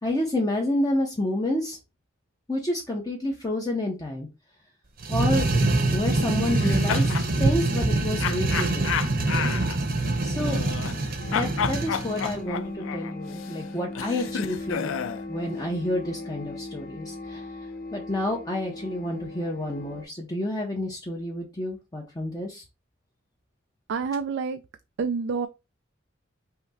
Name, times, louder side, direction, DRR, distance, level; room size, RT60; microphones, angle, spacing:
voice 1, 0.0-1.8 2.5-4.3 5.1-5.5 5.9-8.9 10.2-10.6 11.3-15.0 15.3-17.5 17.9-22.6, left 1 dB, 20° left, 0.7 m, -29 dB
sound 1, 5.0-12.4, right 2 dB, 45° right, 0.8 m, -25 dB
Laughter raw, 6.4-7.3 8.2-11.0 11.3-15.2, left 7 dB, 80° left, 0.4 m, -31 dB
sound 2, 11.2-20.0, left 2 dB, 50° left, 0.9 m, -38 dB
voice 2, 23.9-24.6 25.0-25.5, right 5 dB, 60° right, 0.3 m, -27 dB
5.6 x 2.0 x 4.1 m
head